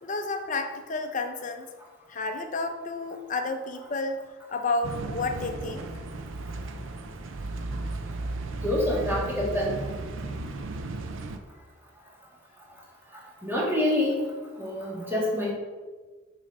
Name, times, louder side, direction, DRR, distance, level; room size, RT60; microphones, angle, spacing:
voice 1, 0.0-1.7 2.1-5.9, left 3 dB, 40° left, 6 dB, 0.6 m, -31 dB
sound 1, 4.8-11.4, right 2 dB, 75° right, 0.6 m, -35 dB
voice 2, 8.6-9.7 13.4-14.2 14.6-15.5, left 1 dB, 10° right, -5 dB, 1.7 m, -26 dB
6.4 x 4.1 x 5.3 m, 1.3 s
head